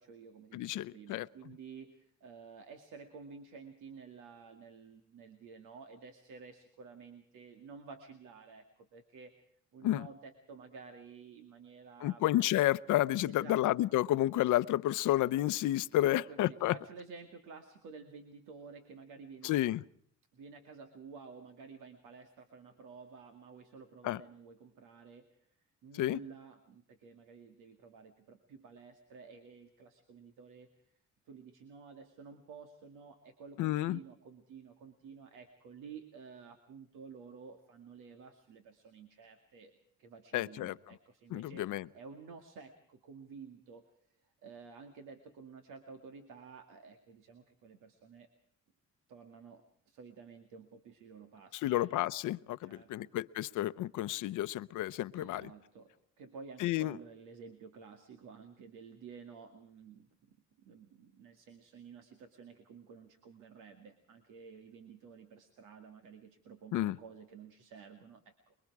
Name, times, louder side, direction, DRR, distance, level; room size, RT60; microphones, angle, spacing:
voice 1, 0.0-9.3 9.7-12.2 13.2-13.7 16.1-19.6 20.3-25.4 25.8-30.7 31.3-39.7 40.0-41.7 41.9-43.8 44.2-48.3 49.1-51.9 52.6-53.1 55.1-68.5, right 5 dB, 90° right, 2.3 m, -52 dB
voice 2, 0.5-1.3 9.8-10.1 12.0-16.8 19.4-19.8 24.0-24.2 25.9-26.2 33.6-34.0 40.3-40.7 41.3-41.9 51.5-55.5 56.6-57.0 66.7-67.0, left 14 dB, 85° left, 0.8 m, -31 dB
25.0 x 23.0 x 4.8 m
cardioid pair, 90°, 30 cm